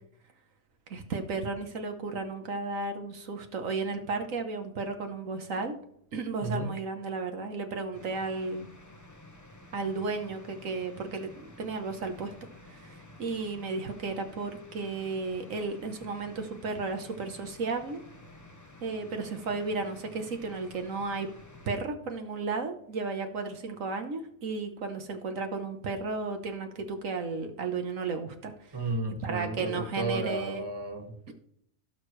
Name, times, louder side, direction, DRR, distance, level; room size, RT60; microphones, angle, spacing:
voice 1, 0.9-5.8 6.1-8.7 9.7-12.3 12.6-18.0 18.8-21.3 21.7-28.8 29.2-30.6 31.3-31.4, right 4 dB, 75° right, 6 dB, 1.4 m, -34 dB
voice 2, 6.4-6.7 28.7-31.3, right 2 dB, 20° right, 3 dB, 1.8 m, -33 dB
metro subway hallway corner noise heavy ventilation rumble, 7.9-21.8, left 2 dB, 15° left, 1.0 m, -52 dB
17.0 x 6.5 x 3.2 m, 0.67 s
omnidirectional pair, 1.4 m